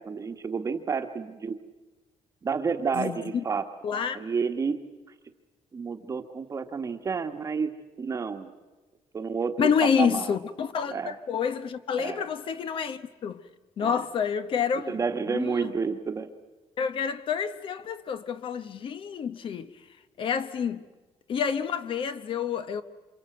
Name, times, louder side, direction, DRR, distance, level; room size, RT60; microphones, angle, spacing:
voice 1, 0.0-1.6 2.4-3.7 4.1-4.8 5.7-7.7 8.0-8.5 9.1-10.3 10.9-11.2 12.0-12.3 13.8-14.0 14.9-16.3, right 5 dB, 25° right, 1.3 m, -30 dB
voice 2, 2.9-3.4 3.8-4.3 9.6-13.4 13.8-15.0 15.3-15.7 16.8-19.7 20.2-20.8 21.3-22.8, left 7 dB, 45° left, 1.0 m, -28 dB
28.0 x 26.0 x 7.8 m
cardioid pair, 170°, 12 cm